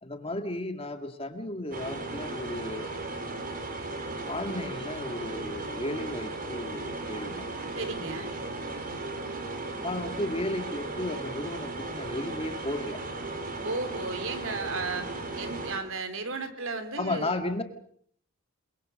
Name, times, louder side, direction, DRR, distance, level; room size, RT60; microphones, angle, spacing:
voice 1, 0.0-3.0 4.3-7.5 9.8-13.0 17.0-17.6, left 1 dB, 25° left, 7 dB, 2.2 m, -34 dB
sound 1, 1.7-15.8, right 2 dB, 40° right, 3.9 m, -36 dB
voice 2, 7.8-8.3 13.6-15.1 15.4-17.4, right 3 dB, 70° right, 9 dB, 3.5 m, -34 dB
29.0 x 22.0 x 6.5 m, 0.63 s
head